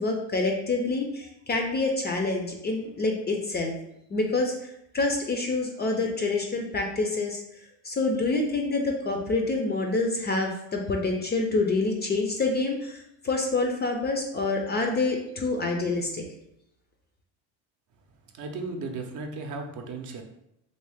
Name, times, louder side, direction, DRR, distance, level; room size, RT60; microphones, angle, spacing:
voice 1, 0.0-3.7 4.1-4.5 4.9-7.4 7.8-16.2, left 3 dB, 25° left, 2 dB, 0.4 m, -27 dB
voice 2, 18.3-20.2, right 3 dB, 45° right, 4 dB, 0.6 m, -35 dB
3.1 x 2.7 x 3.3 m, 0.79 s
supercardioid pair, 105°, 41 cm